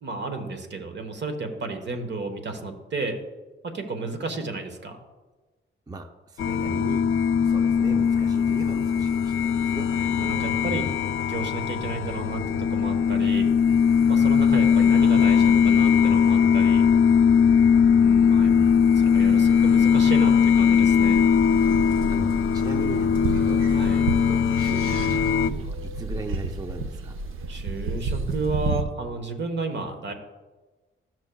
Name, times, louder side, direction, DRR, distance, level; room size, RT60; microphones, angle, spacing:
voice 1, 0.0-3.2 3.6-5.0 9.6-10.8 11.3-13.5 14.1-16.8 18.0-18.5 18.9-21.2 23.7-24.0 27.5-30.1, right 3 dB, 60° right, 6 dB, 1.2 m, -32 dB
voice 2, 5.9-7.0 7.4-9.9 10.7-10.9 18.4-19.2 21.7-21.8 22.1-23.6 24.3-27.2, right 3 dB, 20° right, 6 dB, 0.6 m, -37 dB
sound 1, 6.4-25.5, left 7 dB, 75° left, 0.4 m, -20 dB
sound 2, 20.8-28.8, right 3 dB, 90° right, 0.7 m, -32 dB
14.0 x 6.2 x 2.3 m, 1.2 s
cardioid pair, 90°, 20 cm